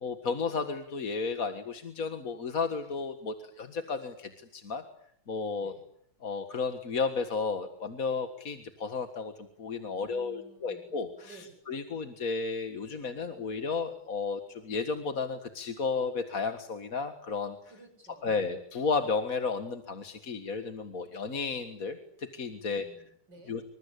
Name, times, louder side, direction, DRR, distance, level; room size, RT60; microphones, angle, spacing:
voice 1, 0.0-4.8 5.3-5.7 6.2-17.6 18.2-22.9 23.5-23.6, left 4 dB, 40° left, 7 dB, 2.0 m, -33 dB
voice 2, 9.9-11.5 17.7-18.5 22.6-23.6, right 2 dB, 55° right, 6 dB, 8.0 m, -55 dB
27.0 x 25.0 x 8.5 m, 0.70 s
omnidirectional pair, 2.3 m